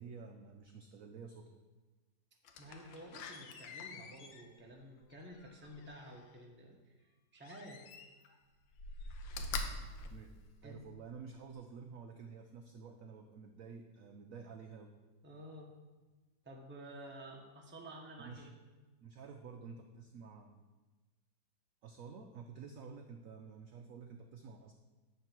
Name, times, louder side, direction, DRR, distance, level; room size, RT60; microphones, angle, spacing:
voice 1, 0.0-1.6 10.1-10.3 10.6-14.9 18.2-18.6 19.0-20.6 21.8-24.7, right 5 dB, 75° right, 4 dB, 0.7 m, -50 dB
Slam, 2.4-6.3 7.4-8.3 8.7-11.0 11.5-11.6, left 3 dB, 85° left, 1.4 m, -45 dB
voice 2, 2.6-7.0 7.3-8.0 10.6-10.8 15.2-15.7 16.4-18.5, right 1 dB, 10° right, -1 dB, 0.6 m, -51 dB
9.1 x 3.7 x 5.9 m, 1.2 s
omnidirectional pair, 2.0 m